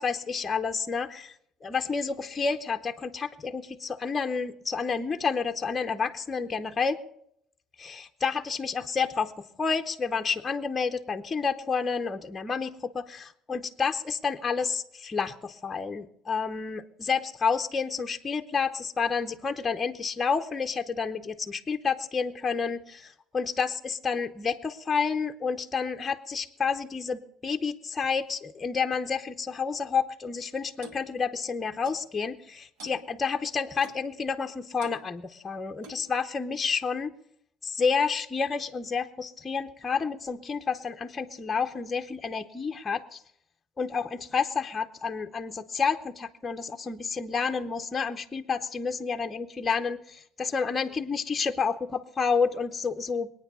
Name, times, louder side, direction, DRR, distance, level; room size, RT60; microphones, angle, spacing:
voice 1, 0.0-1.3 1.6-7.0 7.8-37.1 37.6-43.2 43.8-53.3, left 5 dB, 15° left, 5 dB, 0.7 m, -30 dB
Clock, 30.8-31.0 31.9-32.1 32.8-33.0 33.8-34.1 34.8-35.0 35.8-36.1, right 2 dB, 75° right, 2.4 m, -47 dB
21.5 x 9.3 x 6.8 m, 0.70 s
cardioid pair, 165°, 0 cm